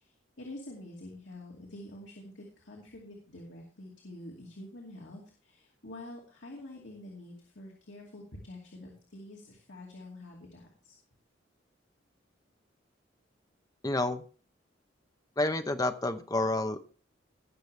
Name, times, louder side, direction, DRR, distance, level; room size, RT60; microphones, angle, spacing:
voice 1, 0.0-11.0, left 1 dB, 70° left, -1 dB, 2.5 m, -47 dB
voice 2, 13.8-14.2 15.4-16.9, left 2 dB, 20° left, 8 dB, 0.8 m, -29 dB
18.0 x 6.9 x 3.3 m, 0.39 s
head